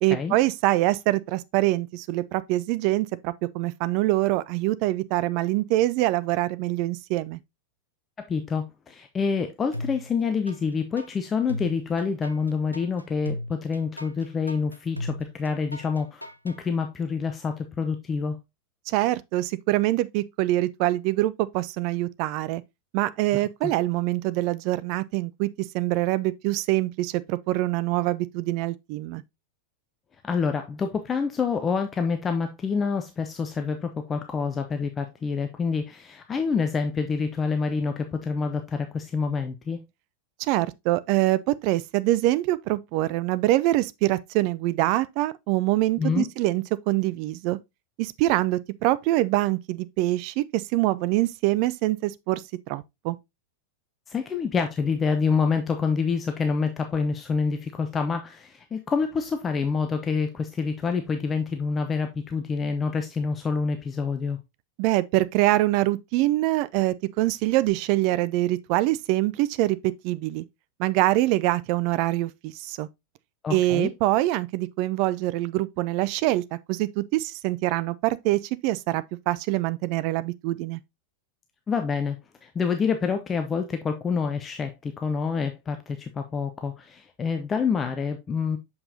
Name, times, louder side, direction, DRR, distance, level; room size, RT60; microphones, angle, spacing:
voice 1, 0.0-7.4 18.9-22.6 22.9-25.5 25.7-29.2 40.4-47.6 48.0-53.2 64.8-70.4 70.8-72.9 73.5-80.8, right 17 dB, 45° right, 0.4 m, -24 dB
voice 2, 8.2-18.4 30.2-39.8 46.0-46.3 54.1-64.4 73.4-73.9 81.7-88.6, left 5 dB, 20° left, 0.7 m, -27 dB
sound 1, 9.7-10.6 11.0-16.6, left 1 dB, 90° left, 0.5 m, -36 dB
6.7 x 5.5 x 2.7 m
figure-of-eight pair, 90°, 0 cm